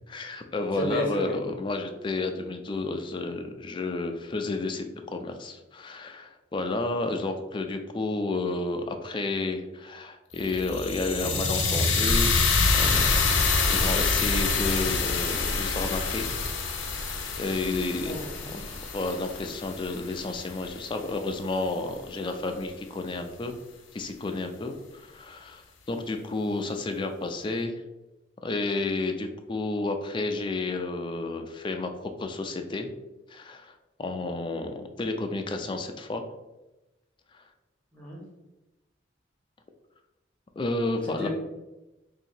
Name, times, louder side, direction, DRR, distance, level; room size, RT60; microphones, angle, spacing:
voice 1, 0.1-12.4 12.7-13.2 13.5-16.4 16.9-18.2 18.7-23.6 23.9-27.8 28.4-31.9 32.2-32.9 33.3-36.2 37.3-37.4 40.6-41.3, left 2 dB, 25° left, 5 dB, 0.4 m, -31 dB
voice 2, 0.7-1.3 18.0-18.6 37.9-38.2 41.0-41.3, equal, 5° left, -5 dB, 1.2 m, -33 dB
sound 1, 10.3-20.5, left 4 dB, 75° left, 0.6 m, -26 dB
2.8 x 2.7 x 4.2 m, 1.0 s
head